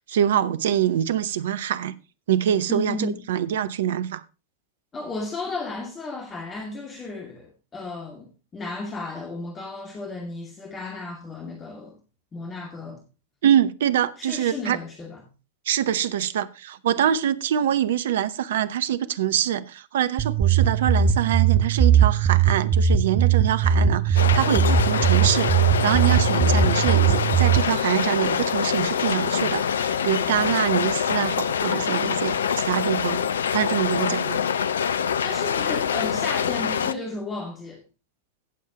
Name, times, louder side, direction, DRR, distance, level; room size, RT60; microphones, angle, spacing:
voice 1, 0.1-1.9 2.3-4.2 13.4-14.8 15.7-33.2 33.5-34.4, right 10 dB, 60° right, 0.8 m, -24 dB
voice 2, 2.7-3.2 4.9-12.0 12.3-13.0 14.2-15.2 35.2-37.8, left 3 dB, 20° left, 2.3 m, -34 dB
sound 1, 20.2-27.6, right 8 dB, 25° right, 0.9 m, -20 dB
sound 2, 24.2-36.9, left 7 dB, 65° left, 0.5 m, -25 dB
17.0 x 7.4 x 2.9 m
figure-of-eight pair, 90°, 0 cm